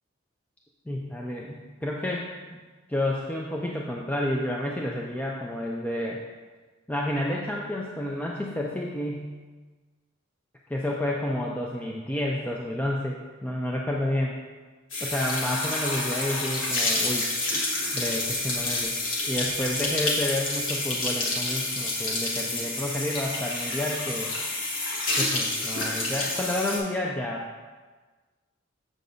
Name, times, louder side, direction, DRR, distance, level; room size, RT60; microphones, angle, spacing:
voice 1, 0.9-2.6 2.9-6.2 6.9-9.4 10.7-14.4 15.0-17.3 17.9-18.9 19.2-24.3 25.1-27.4, left 1 dB, 10° left, -2 dB, 0.4 m, -30 dB
sound 1, 14.9-26.8, left 2 dB, 75° left, 1.5 m, -28 dB
7.4 x 6.8 x 2.6 m, 1.4 s
head